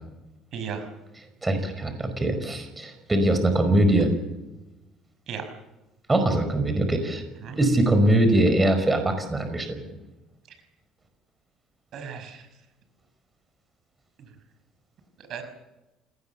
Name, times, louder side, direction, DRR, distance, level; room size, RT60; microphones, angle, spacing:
voice 1, 0.5-0.9 5.3-5.5 7.4-7.6 11.9-12.5 14.2-14.3 15.2-15.4, right 7 dB, 60° right, 8 dB, 5.5 m, -35 dB
voice 2, 1.4-4.1 6.1-7.2 7.6-9.8, right 1 dB, 20° right, 7 dB, 5.2 m, -22 dB
28.0 x 19.5 x 7.1 m, 1.0 s
supercardioid pair, 95°, 0 cm